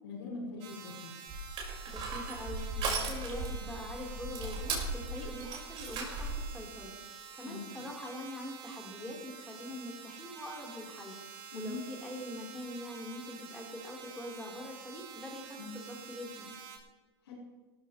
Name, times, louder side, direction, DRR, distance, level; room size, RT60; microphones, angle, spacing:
voice 1, 0.0-1.1 7.4-7.6 11.5-11.8 15.6-15.7 17.2-17.3, left 3 dB, 80° left, -9 dB, 5.4 m, -41 dB
sound 1, 0.6-16.8, right 7 dB, 55° right, 3.3 m, -49 dB
Crushing, 1.3-6.5, right 3 dB, 40° right, 5.4 m, -37 dB
voice 2, 1.9-6.9 7.3-11.2 11.5-16.5, left 1 dB, 5° left, -3 dB, 4.3 m, -43 dB
18.0 x 14.0 x 3.4 m, 1.4 s
hypercardioid pair, 120°, 14 cm